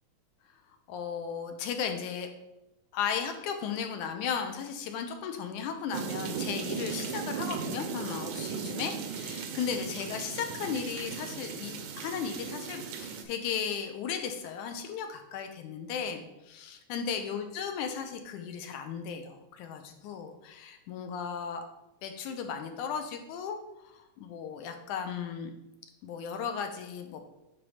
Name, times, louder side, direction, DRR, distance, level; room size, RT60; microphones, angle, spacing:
voice 1, 0.9-2.3 2.9-21.6 22.0-23.6 23.9-25.5 26.0-27.3, left 7 dB, 80° left, 6 dB, 2.3 m, -35 dB
sound 1, 5.9-13.2, right 6 dB, 85° right, 2.3 m, -37 dB
9.8 x 3.5 x 5.5 m, 0.91 s
omnidirectional pair, 3.5 m